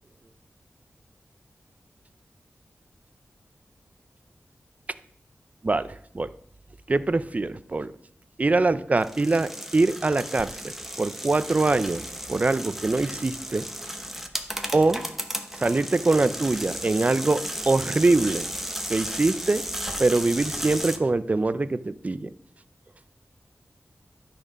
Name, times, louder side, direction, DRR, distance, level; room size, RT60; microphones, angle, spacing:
voice 1, 5.6-6.3 6.9-7.9 8.4-10.5 11.0-12.0 12.3-13.7 14.7-15.1 15.6-18.5 18.9-19.6 20.0-22.3, right 3 dB, 30° right, 14 dB, 0.4 m, -23 dB
sound 1, 9.0-21.0, equal, 5° right, 0.9 m, -34 dB
12.0 x 4.3 x 5.2 m, 0.67 s
wide cardioid pair, 85°, 5 cm